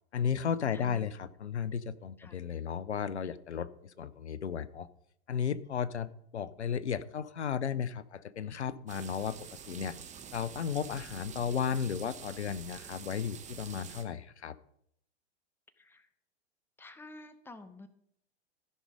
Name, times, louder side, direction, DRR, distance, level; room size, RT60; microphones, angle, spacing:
voice 1, 0.1-4.9 5.3-10.0 10.3-14.6, left 7 dB, 90° left, 17 dB, 0.7 m, -34 dB
voice 2, 0.7-1.1 2.2-2.3 15.8-16.1 16.8-17.9, left 2 dB, 5° left, 11 dB, 0.8 m, -50 dB
sound 1, 8.9-14.0, right 7 dB, 20° right, 1.2 m, -47 dB
15.0 x 5.4 x 5.2 m, 0.73 s
hypercardioid pair, 105°, 33 cm